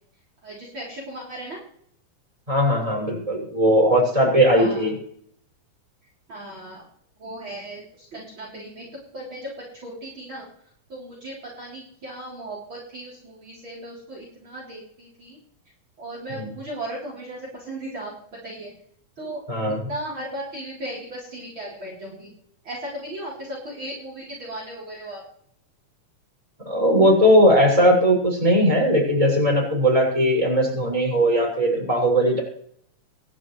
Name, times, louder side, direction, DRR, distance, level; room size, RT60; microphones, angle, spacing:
voice 1, 0.4-1.6 4.5-4.9 6.3-6.8 7.2-8.9 9.1-9.5 9.8-10.5 10.9-15.4 16.0-18.7 19.2-19.4 19.9-22.4 22.6-25.2, right 1 dB, 40° right, -4 dB, 4.4 m, -36 dB
voice 2, 2.5-4.9 16.3-16.5 19.5-19.8 26.6-32.4, equal, 10° right, -2 dB, 6.3 m, -19 dB
26.0 x 11.0 x 3.3 m, 0.68 s
omnidirectional pair, 3.5 m